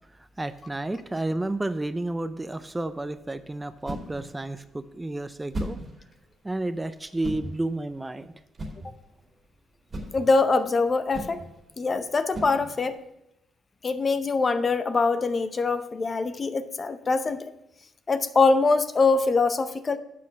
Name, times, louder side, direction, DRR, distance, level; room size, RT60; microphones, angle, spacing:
voice 1, 0.4-5.8 6.4-8.3, right 2 dB, 15° right, 11 dB, 0.4 m, -31 dB
sound 1, 2.7-13.1, right 1 dB, 30° right, 2.5 m, -40 dB
voice 2, 10.1-11.4 11.8-13.0 13.8-17.5 18.1-20.0, left 3 dB, 35° left, 12 dB, 0.6 m, -23 dB
7.6 x 5.8 x 5.7 m, 0.83 s
cardioid pair, 90°, 0 cm